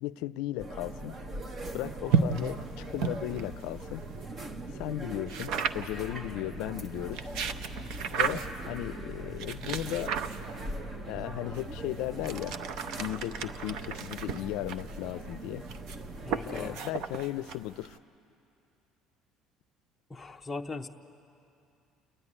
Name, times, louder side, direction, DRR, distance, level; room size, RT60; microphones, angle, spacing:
voice 1, 0.0-1.2 1.7-4.1 4.7-7.3 8.1-10.1 11.1-12.6 13.0-15.6 16.5-18.0, left 16 dB, 80° left, 17 dB, 0.4 m, -36 dB
sound 1, 0.6-16.8, right 2 dB, 25° right, 0.9 m, -41 dB
sound 2, 2.1-4.3 5.3-6.1 7.0-8.7 9.4-10.8 11.5-18.0, right 6 dB, 65° right, 0.8 m, -34 dB
voice 2, 16.2-16.8 20.1-20.9, left 3 dB, 10° left, 3 dB, 0.7 m, -39 dB
29.0 x 10.5 x 9.7 m, 2.6 s
cardioid pair, 150°, 0 cm